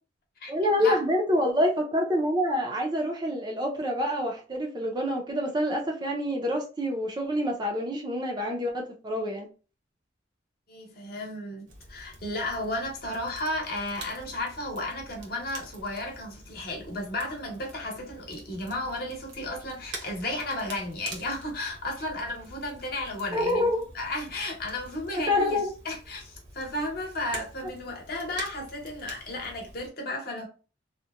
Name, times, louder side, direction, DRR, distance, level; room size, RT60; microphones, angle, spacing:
voice 1, 0.5-9.5 23.3-23.9 25.1-25.7, left 1 dB, 20° right, 0.4 m, -27 dB
voice 2, 10.7-23.7 23.9-30.5, left 1 dB, 50° left, 0.8 m, -34 dB
Crackle, 11.7-29.9, right 2 dB, 70° right, 0.8 m, -47 dB
2.8 x 2.1 x 2.3 m
head